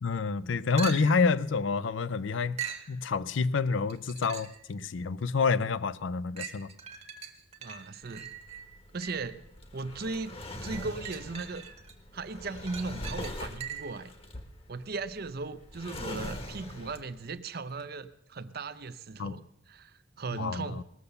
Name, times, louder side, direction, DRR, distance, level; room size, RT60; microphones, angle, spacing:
voice 1, 0.0-2.6 2.9-6.7 19.2-19.4 20.4-20.8, left 4 dB, 70° left, 0.5 m, -28 dB
sound 1, 0.8-1.3 2.6-2.9 3.9-4.6 5.2-5.3 6.4-9.3 10.7-11.9 12.3-14.0 17.8-17.9, right 7 dB, 35° right, 1.1 m, -42 dB
voice 2, 7.6-8.3 8.9-9.4 9.7-11.6 12.1-14.1 14.7-20.8, right 3 dB, 50° right, 0.6 m, -37 dB
Drawer open or close, 8.0-17.3, left 1 dB, 30° left, 1.1 m, -42 dB
18.5 x 6.8 x 6.8 m
head